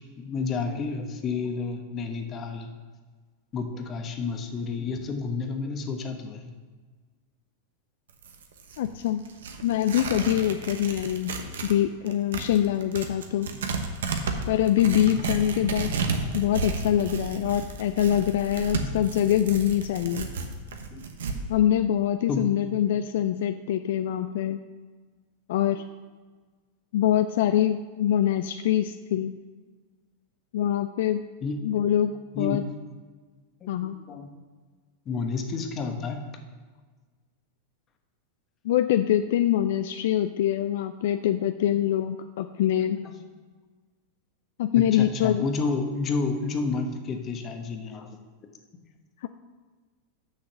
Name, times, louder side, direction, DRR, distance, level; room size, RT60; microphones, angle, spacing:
voice 1, 0.2-2.7 3.5-6.5 20.9-21.0 22.3-22.5 31.4-31.7 32.3-32.6 33.6-34.3 35.1-36.2 43.0-43.2 44.7-48.2, left 4 dB, 30° left, 5 dB, 1.0 m, -30 dB
Tearing, 8.1-11.8 12.1-21.4, right 4 dB, 85° right, 0.9 m, -32 dB
voice 2, 8.8-9.2 9.6-13.5 14.5-15.9 16.3-20.3 21.5-24.6 25.5-25.8 26.9-29.4 30.5-31.2 31.6-32.6 33.7-34.0 38.6-43.1 44.6-45.5 49.2-49.3, left 11 dB, 70° left, 9 dB, 0.3 m, -24 dB
6.5 x 5.7 x 6.8 m, 1.4 s
hypercardioid pair, 120°, 0 cm